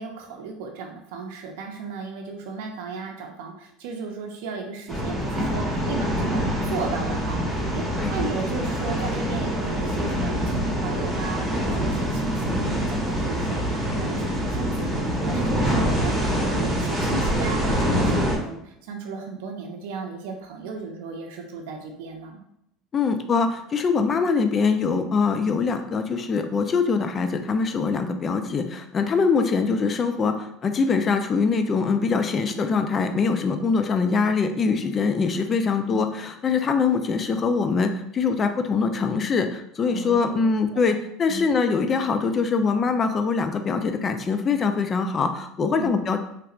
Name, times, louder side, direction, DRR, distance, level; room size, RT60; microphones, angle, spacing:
voice 1, 0.0-22.4 39.9-41.0 41.3-41.5 45.6-45.9, right 4 dB, 80° right, 2 dB, 0.5 m, -35 dB
sound 1, 4.9-18.4, equal, 5° right, 1.0 m, -25 dB
voice 2, 22.9-46.2, left 5 dB, 30° left, 7 dB, 0.4 m, -23 dB
3.3 x 2.9 x 2.4 m, 0.77 s
supercardioid pair, 120°, 0 cm